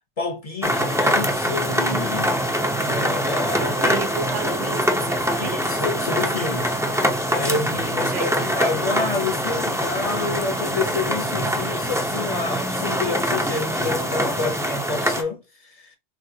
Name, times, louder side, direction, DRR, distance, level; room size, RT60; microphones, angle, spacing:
voice 1, 0.2-2.4 2.8-3.7 5.4-6.8 7.3-16.0, left 3 dB, 35° left, 0.7 m, -28 dB
sound 1, 0.6-15.2, equal, 5° right, 0.4 m, -24 dB
voice 2, 3.6-5.8 8.1-8.7, right 6 dB, 80° right, 1.1 m, -32 dB
6.1 x 2.4 x 2.8 m
omnidirectional pair, 1.2 m